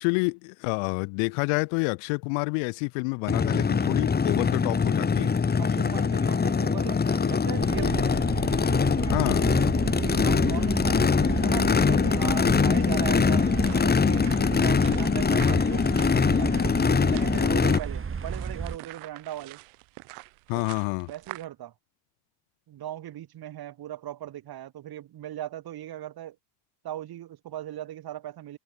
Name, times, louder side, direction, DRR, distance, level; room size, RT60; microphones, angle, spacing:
voice 1, 0.0-5.3 9.0-9.5 20.5-21.1, left 39 dB, 80° left, 0.8 m, -28 dB
Race car auto racing / Idling / Accelerating revving vroom, 3.3-17.8, left 5 dB, 20° left, 1.2 m, -23 dB
voice 2, 5.6-8.2 9.5-9.6 10.0-15.9 16.3-19.6 21.1-21.7 22.7-26.4 26.8-28.6, right 12 dB, 50° right, 1.8 m, -38 dB
sound 1, 7.6-18.8, right 6 dB, 25° right, 2.4 m, -33 dB
sound 2, 13.6-21.5, right 31 dB, 80° right, 2.4 m, -46 dB
open air
supercardioid pair, 95°, 49 cm